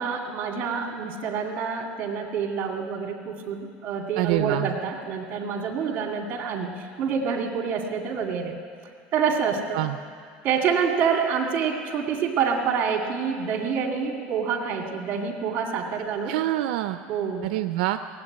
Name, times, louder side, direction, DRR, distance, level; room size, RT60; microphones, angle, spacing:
voice 1, 0.0-8.5 9.1-9.8 10.4-16.4 17.1-17.4, right 6 dB, 40° right, 2 dB, 2.3 m, -27 dB
voice 2, 4.2-4.7 9.7-10.0 16.3-17.0 17.4-18.0, right 15 dB, 85° right, 9 dB, 0.5 m, -25 dB
18.0 x 8.0 x 9.8 m, 2.1 s
cardioid pair, 150°, 5 cm